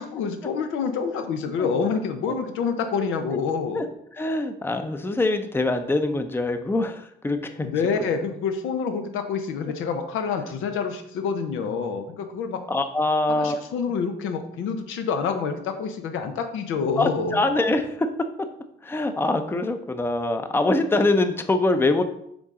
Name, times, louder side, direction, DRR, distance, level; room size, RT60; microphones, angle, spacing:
voice 1, 0.0-3.9 7.6-12.6 13.3-17.4, left 5 dB, 90° left, 6 dB, 0.8 m, -27 dB
voice 2, 4.2-7.7 12.7-13.6 17.0-18.1 18.8-22.0, left 2 dB, 10° left, 8 dB, 0.6 m, -24 dB
7.1 x 3.7 x 3.7 m, 0.73 s
cardioid pair, 90°, 20 cm